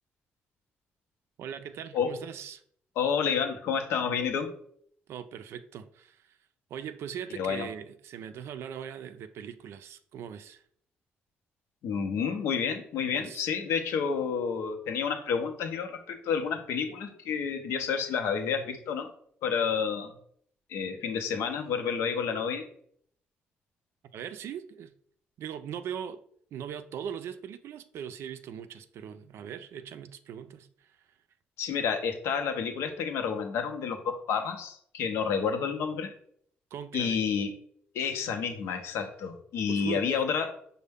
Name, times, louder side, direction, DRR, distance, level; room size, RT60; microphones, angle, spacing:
voice 1, 1.4-2.6 5.1-6.4 6.7-10.6 13.1-13.4 24.1-24.9 25.4-26.2 26.5-31.0 36.7-37.2 39.7-40.1, right 8 dB, 70° right, 0.3 m, -40 dB
voice 2, 3.0-4.5 7.4-7.7 11.8-19.1 19.4-20.1 20.7-22.7 31.6-36.1 36.9-37.5 37.9-40.5, left 6 dB, 85° left, 0.6 m, -30 dB
5.3 x 2.1 x 3.4 m
cardioid pair, 85°, 4 cm